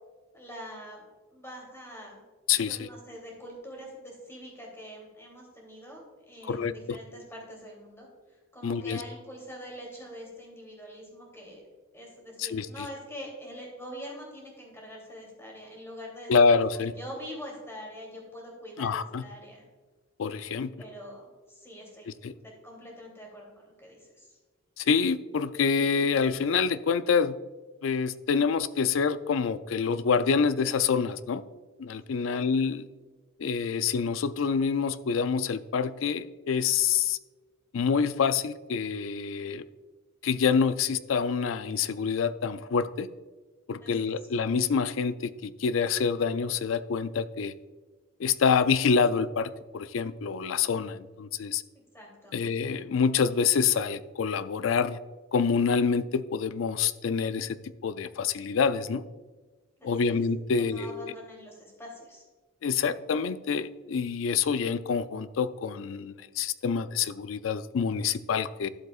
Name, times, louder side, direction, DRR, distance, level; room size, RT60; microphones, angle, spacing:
voice 1, 0.3-1.1 1.3-2.2 2.7-11.6 11.9-19.6 20.8-22.1 22.3-24.3 32.2-32.5 43.8-44.1 51.9-52.4 59.8-60.2 60.6-62.2, equal, 15° left, -2 dB, 2.9 m, -44 dB
voice 2, 6.4-7.0 8.6-9.0 12.4-12.7 16.3-16.9 18.8-19.2 20.2-20.7 22.1-22.3 24.8-27.4 27.8-31.4 31.8-32.8 33.4-37.2 37.7-39.6 40.2-43.1 43.7-47.5 48.2-51.6 52.3-55.0 55.3-57.6 57.8-59.0 59.8-61.1 62.6-68.7, left 6 dB, 75° left, 14 dB, 0.4 m, -26 dB
12.0 x 7.8 x 2.4 m, 1.3 s
head